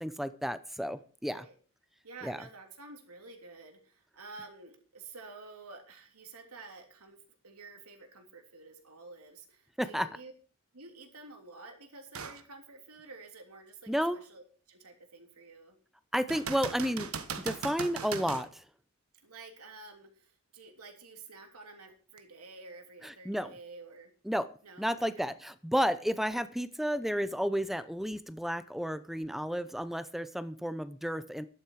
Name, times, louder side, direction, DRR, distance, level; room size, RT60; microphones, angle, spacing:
voice 1, 0.0-1.5 2.2-2.4 9.8-10.1 13.9-14.2 16.1-17.1 17.4-18.6 23.0-23.5 24.3-24.5 24.8-31.5, equal, ahead, 14 dB, 0.5 m, -32 dB
voice 2, 1.2-1.5 2.0-7.2 7.4-10.3 10.7-15.8 19.2-24.1 24.6-25.3, right 3 dB, 90° right, 4 dB, 3.2 m, -50 dB
sound 1, 12.1-12.4 13.0-13.1 16.3-18.5 22.2-22.3, right 5 dB, 70° right, 1.3 m, -38 dB
12.5 x 11.5 x 4.7 m, 0.40 s
head